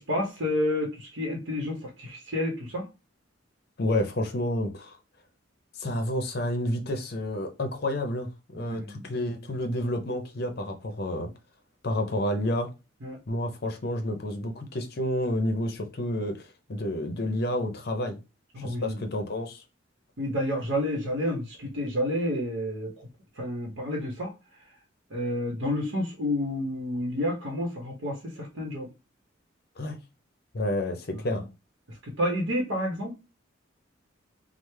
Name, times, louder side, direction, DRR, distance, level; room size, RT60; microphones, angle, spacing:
voice 1, 0.0-2.9 8.5-9.1 13.0-13.2 18.5-19.0 20.2-23.1 23.4-24.3 25.1-28.9 31.1-31.3 32.0-33.1, left 1 dB, 70° right, 0.8 m, -30 dB
voice 2, 3.8-4.9 5.8-11.3 11.8-12.7 13.3-18.2 18.6-19.6 29.8-30.0 30.5-31.5, left 1 dB, 55° left, 0.6 m, -30 dB
3.2 x 2.0 x 3.1 m
head